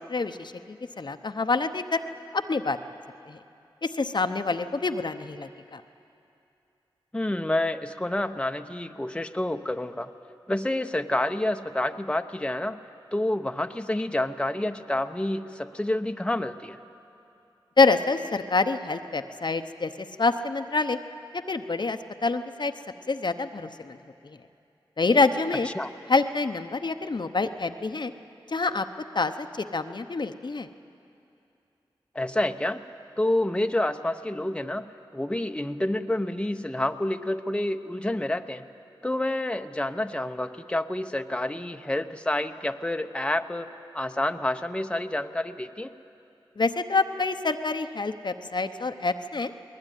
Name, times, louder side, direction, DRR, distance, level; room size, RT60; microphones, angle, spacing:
voice 1, 0.0-2.0 2.3-2.8 3.3-3.4 3.8-5.8 17.8-19.9 20.2-21.0 21.5-22.7 23.1-24.0 24.2-24.4 25.0-25.7 26.1-28.1 28.5-28.9 29.1-30.7 46.6-49.5, left 3 dB, 55° left, 8 dB, 0.8 m, -26 dB
voice 2, 7.1-10.1 10.5-16.8 25.7-25.9 32.1-32.8 33.2-38.7 39.0-45.9, left 1 dB, 10° left, 7 dB, 0.8 m, -28 dB
20.5 x 19.0 x 9.1 m, 2.7 s
cardioid pair, 45°, 9 cm